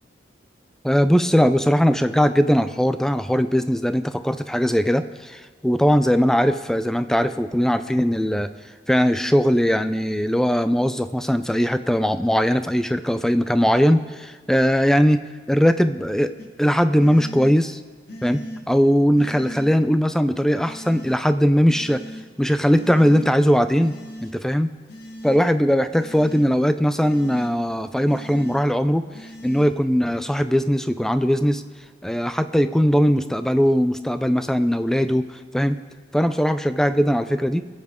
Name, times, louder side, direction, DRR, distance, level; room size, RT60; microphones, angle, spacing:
voice 1, 0.8-8.5 8.9-15.2 15.5-16.3 16.6-17.8 18.2-18.4 18.7-22.0 22.4-24.0 24.2-24.7 25.2-29.0 29.4-31.6 32.0-35.2 35.5-35.8 36.1-37.7, equal, 5° left, 10 dB, 0.4 m, -19 dB
sound 1, 16.4-16.5 17.0-17.5 18.1-18.6 19.1-19.7 20.6-21.1 21.7-22.2 22.7-23.3 23.8-24.3 24.9-25.4 25.9-26.4 27.0-27.5 28.1-28.6 29.1-29.6, equal, 60° left, 2.0 m, -38 dB
23.5 x 8.1 x 3.6 m, 1.5 s
head